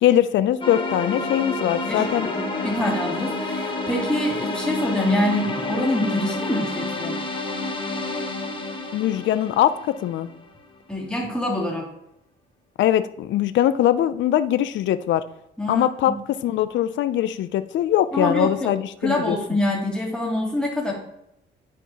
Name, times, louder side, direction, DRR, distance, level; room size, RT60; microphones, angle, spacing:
voice 1, 0.0-2.3 8.9-10.3 12.8-15.2 15.7-16.1 16.4-19.4, left 11 dB, 65° left, 13 dB, 0.4 m, -21 dB
sound 1, 0.6-10.6, left 2 dB, 25° left, 1.4 m, -29 dB
voice 2, 1.9-7.2 10.9-11.9 15.6-16.2 18.1-18.7 19.0-20.9, left 1 dB, 5° left, -3 dB, 2.4 m, -25 dB
10.5 x 4.5 x 2.9 m, 0.79 s
cardioid pair, 105°, 20 cm